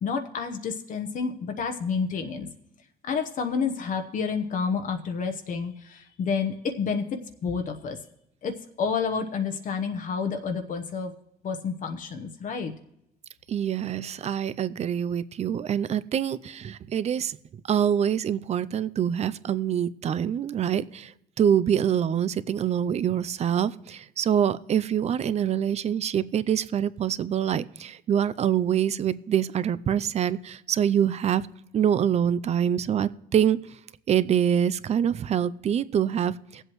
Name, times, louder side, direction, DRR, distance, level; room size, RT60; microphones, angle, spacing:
voice 1, 0.0-2.5 3.0-8.0 8.4-11.1 11.4-12.7, left 5 dB, 50° left, 5 dB, 0.9 m, -29 dB
voice 2, 13.5-17.4 17.7-31.5 31.7-33.8 34.1-36.6, right 9 dB, 40° right, 16 dB, 0.5 m, -25 dB
18.5 x 7.8 x 3.1 m, 0.81 s
cardioid pair, 110°, 17 cm